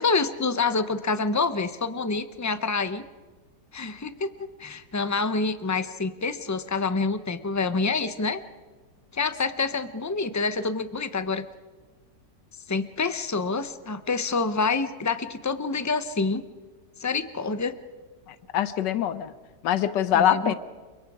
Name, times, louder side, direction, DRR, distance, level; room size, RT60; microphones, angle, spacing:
voice 1, 0.0-3.0 3.7-4.3 4.6-8.4 9.1-11.4 12.7-16.4 17.0-17.8 20.1-20.5, left 4 dB, 25° left, 11 dB, 0.3 m, -27 dB
voice 2, 18.3-19.3 19.6-20.6, left 10 dB, 90° left, 13 dB, 1.5 m, -24 dB
29.5 x 23.5 x 4.9 m, 1.4 s
omnidirectional pair, 1.8 m